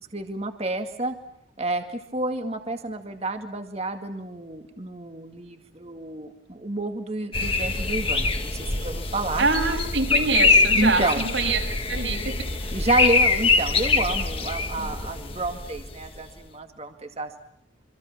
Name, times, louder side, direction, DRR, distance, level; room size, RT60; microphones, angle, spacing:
voice 1, 0.1-1.2 1.6-9.5 10.7-11.2 12.7-17.3, right 2 dB, 30° right, 6 dB, 2.0 m, -29 dB
sound 1, 7.3-16.2, left 3 dB, 30° left, 1.8 m, -24 dB
voice 2, 9.4-11.6 11.9-12.3 12.6-12.8 14.8-14.9, right 3 dB, 70° right, 2 dB, 6.8 m, -25 dB
27.5 x 25.5 x 7.3 m, 0.70 s
head